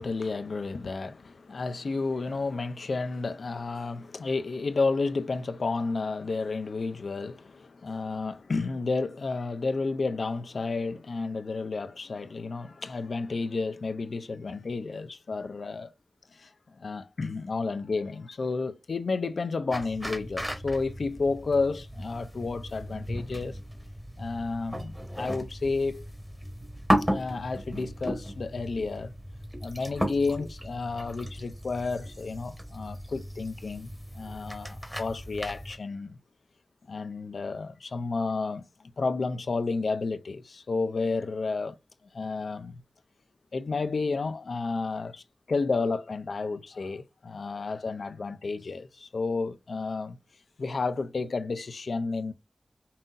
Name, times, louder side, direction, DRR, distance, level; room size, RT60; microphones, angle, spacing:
voice 1, 0.0-15.9 16.3-23.6 24.2-26.1 27.1-29.1 29.6-36.2 36.9-38.6 39.0-41.8 42.1-42.8 43.5-50.2 50.6-52.3, left 3 dB, 80° left, 0.5 m, -31 dB
sound 1, 19.7-35.8, equal, 5° right, 1.0 m, -35 dB
5.6 x 2.6 x 2.4 m
wide cardioid pair, 75°, 0 cm